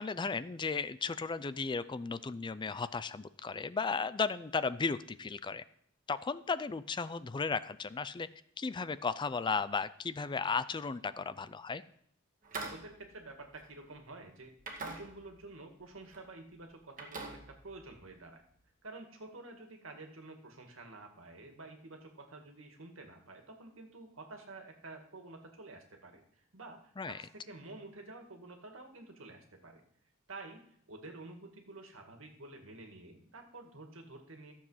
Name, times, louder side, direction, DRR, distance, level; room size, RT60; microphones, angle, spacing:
voice 1, 0.0-5.6 6.1-8.3 8.6-11.8 27.0-27.2, left 4 dB, 25° left, 15 dB, 0.4 m, -35 dB
sound 1, 12.4-14.1 14.6-15.5 15.8-16.2 16.5-18.1, right 3 dB, 40° right, 2.0 m, -45 dB
voice 2, 12.5-14.5 14.8-18.4 18.8-29.8 30.3-30.6 30.9-34.5, right 2 dB, 80° right, 4 dB, 2.0 m, -50 dB
14.0 x 7.3 x 5.6 m, 0.68 s
head